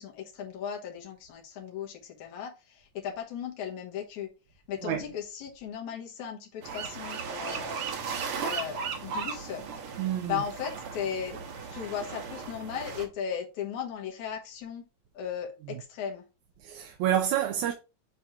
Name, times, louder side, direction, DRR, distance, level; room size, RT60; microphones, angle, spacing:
voice 1, 0.0-4.3 4.7-7.8 8.4-9.7 10.2-14.8 15.1-16.2, left 8 dB, 80° left, 2.5 m, -36 dB
sound 1, 6.6-13.0, right 6 dB, 60° right, 1.8 m, -36 dB
voice 2, 10.0-10.4 16.6-17.7, right 10 dB, 85° right, 2.2 m, -28 dB
7.8 x 2.9 x 4.8 m
omnidirectional pair, 3.3 m